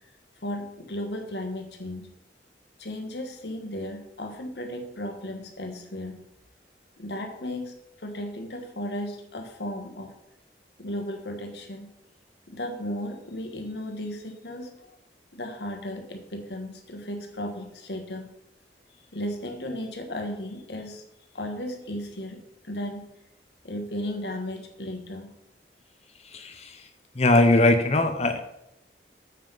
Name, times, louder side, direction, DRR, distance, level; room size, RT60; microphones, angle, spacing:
voice 1, 0.4-2.1 2.8-6.2 7.0-7.7 8.0-10.1 10.8-11.9 12.5-14.9 15.3-18.3 19.1-21.0 21.3-23.1 23.6-25.3, left 1 dB, 70° left, 4 dB, 1.4 m, -35 dB
voice 2, 26.3-26.8 27.1-28.4, left 2 dB, 35° left, 7 dB, 0.9 m, -20 dB
7.4 x 5.6 x 5.7 m, 0.86 s
head